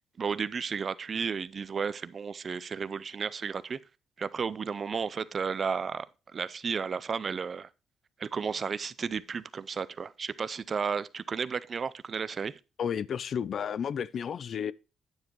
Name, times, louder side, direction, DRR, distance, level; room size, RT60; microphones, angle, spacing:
voice 1, 0.2-3.8 4.2-6.1 6.3-7.7 8.2-12.5, right 6 dB, 40° right, 0.5 m, -33 dB
voice 2, 12.8-14.7, left 8 dB, 55° left, 0.4 m, -32 dB
9.4 x 7.2 x 3.0 m
cardioid pair, 90°, 0 cm